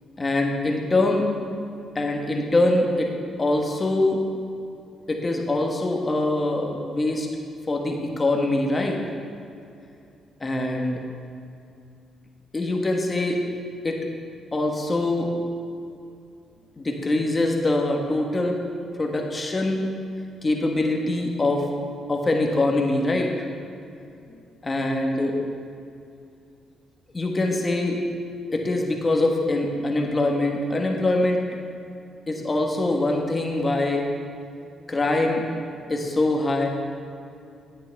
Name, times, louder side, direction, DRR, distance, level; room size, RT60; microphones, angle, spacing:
voice 1, 0.2-1.3 1.9-3.1 3.4-4.2 5.1-7.3 7.7-9.0 10.4-11.0 12.5-13.4 13.8-14.0 14.5-15.3 16.8-18.6 19.0-19.9 20.4-21.7 22.1-23.3 24.6-25.4 27.1-28.0 28.5-31.4 32.3-34.1 34.9-35.4 35.9-36.7, left 2 dB, 25° left, 1 dB, 1.3 m, -23 dB
11.0 x 9.4 x 3.4 m, 2.5 s
cardioid pair, 90°, 0 cm